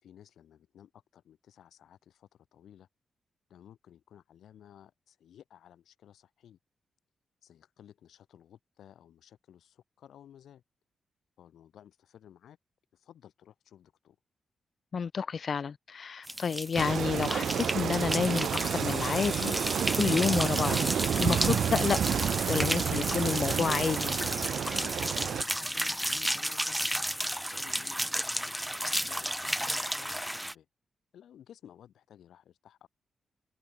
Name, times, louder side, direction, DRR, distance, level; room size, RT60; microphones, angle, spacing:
voice 1, 0.0-2.9 3.5-6.6 7.4-10.6 11.4-12.6 12.9-14.2 25.3-26.8 27.5-30.7 31.1-32.9, left 10 dB, 85° left, 4.1 m, -55 dB
voice 2, 14.9-19.6 20.0-22.0 22.5-24.1, left 6 dB, 55° left, 0.5 m, -30 dB
sound 1, 16.3-30.5, equal, 5° right, 1.3 m, -33 dB
sound 2, 16.8-25.4, right 8 dB, 75° right, 1.0 m, -30 dB
sound 3, 20.4-20.5 20.8-20.9 21.3-21.4 21.8-21.9 22.2-22.3 22.6-22.7 23.1-23.2 23.5-23.6 23.9-24.0 24.3-24.4 24.6-25.0, left 4 dB, 40° left, 1.3 m, -43 dB
cardioid pair, 80°, 0 cm